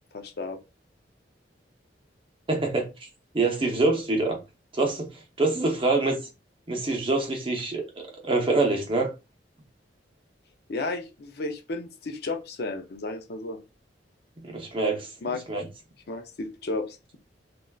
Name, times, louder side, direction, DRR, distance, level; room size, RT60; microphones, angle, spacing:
voice 1, 0.1-0.6 10.7-13.6 15.2-15.4 16.1-17.2, left 2 dB, 60° left, 0.5 m, -33 dB
voice 2, 2.5-2.9 3.3-4.4 4.7-5.1 5.4-6.2 6.7-7.8 8.2-9.1 14.4-15.1 15.5-15.7, right 3 dB, 30° right, 0.7 m, -25 dB
3.3 x 2.5 x 2.3 m
head